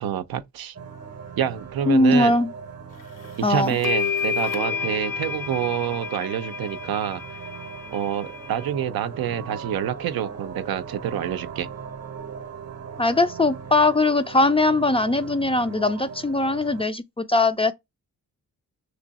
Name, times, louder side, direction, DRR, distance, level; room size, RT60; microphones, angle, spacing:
voice 1, 0.0-0.7 1.4-2.3 3.5-7.2 7.9-11.7, right 10 dB, 80° right, 0.5 m, -27 dB
sound 1, 0.7-16.8, right 6 dB, 45° right, 0.8 m, -39 dB
voice 2, 1.9-2.5 3.4-3.8 13.0-17.7, left 2 dB, 15° left, 0.4 m, -20 dB
sound 2, 3.2-3.3 3.8-8.7, left 6 dB, 60° left, 0.6 m, -30 dB
3.2 x 2.6 x 4.0 m
cardioid pair, 50°, 36 cm